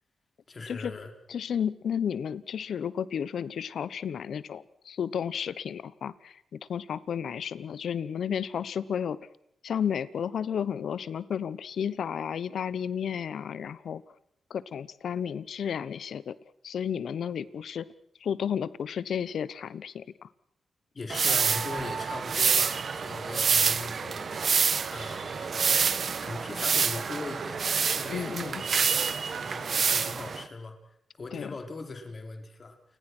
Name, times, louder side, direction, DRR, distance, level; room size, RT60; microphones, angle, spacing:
voice 1, 0.5-1.1 20.9-24.3 24.9-25.9 26.2-27.7 27.9-30.8 31.2-32.8, left 3 dB, 40° left, 5 dB, 4.4 m, -40 dB
voice 2, 1.3-9.2 9.6-14.0 14.5-16.4 16.6-17.9 18.2-20.3 28.1-28.6 31.3-31.5, left 8 dB, 75° left, 18 dB, 1.1 m, -32 dB
sound 1, 21.1-30.4, right 6 dB, 55° right, 1.3 m, -27 dB
29.0 x 19.0 x 6.2 m, 0.73 s
cardioid pair, 90°, 0 cm